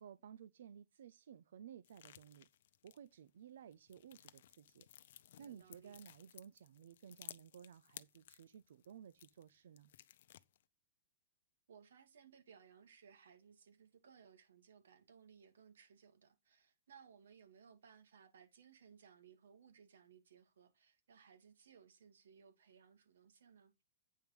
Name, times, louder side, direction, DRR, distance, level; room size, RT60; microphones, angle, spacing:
voice 1, 0.0-2.5 2.8-9.9, right 8 dB, 60° right, 0.5 m, -56 dB
sound 1, 1.8-3.3 3.7-9.5 9.8-10.6, left 11 dB, 50° left, 0.6 m, -58 dB
voice 2, 5.4-6.0 11.7-23.7, right 7 dB, 80° right, 2.6 m, -63 dB
9.2 x 4.6 x 5.3 m
hypercardioid pair, 175°, 0 cm